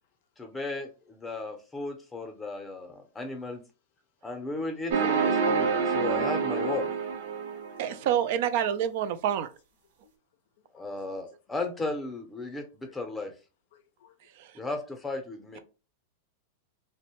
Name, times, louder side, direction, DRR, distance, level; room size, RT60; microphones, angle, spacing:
voice 1, 0.4-3.6 4.2-6.9 10.7-13.3 14.5-15.6, left 2 dB, 10° left, 0.6 m, -35 dB
sound 1, 4.9-7.9, right 5 dB, 75° right, 0.8 m, -27 dB
voice 2, 7.8-9.5 14.4-14.5, right 10 dB, 60° right, 0.3 m, -27 dB
voice 3, 13.7-14.1, left 10 dB, 70° left, 0.4 m, -52 dB
2.6 x 2.1 x 2.9 m
supercardioid pair, 145°, 0 cm